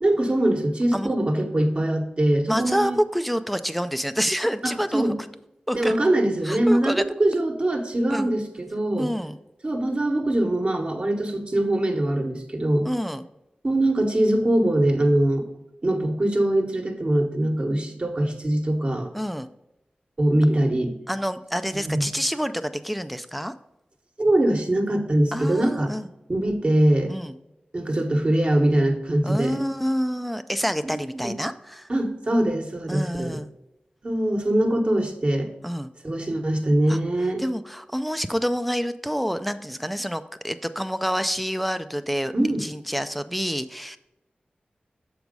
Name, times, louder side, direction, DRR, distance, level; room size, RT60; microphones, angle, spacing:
voice 1, 0.0-3.0 4.6-5.1 5.7-9.1 9.6-12.9 13.6-15.4 15.8-19.1 20.2-20.9 21.8-22.0 24.2-25.9 26.3-27.1 27.7-29.6 30.8-31.4 31.9-33.4 34.0-35.5 36.0-37.4 42.3-42.6, right 1 dB, 40° right, 3 dB, 1.2 m, -22 dB
voice 2, 2.5-5.1 5.7-6.0 6.4-7.0 7.3-7.5 8.1-8.3 9.0-9.4 12.8-13.2 19.1-19.5 21.1-23.5 25.3-26.1 27.1-27.3 29.2-31.9 32.9-33.5 35.6-35.9 36.9-37.0 37.4-42.3 42.6-44.0, equal, ahead, 10 dB, 0.4 m, -27 dB
7.1 x 4.7 x 5.3 m, 0.91 s
wide cardioid pair, 95°, 3 cm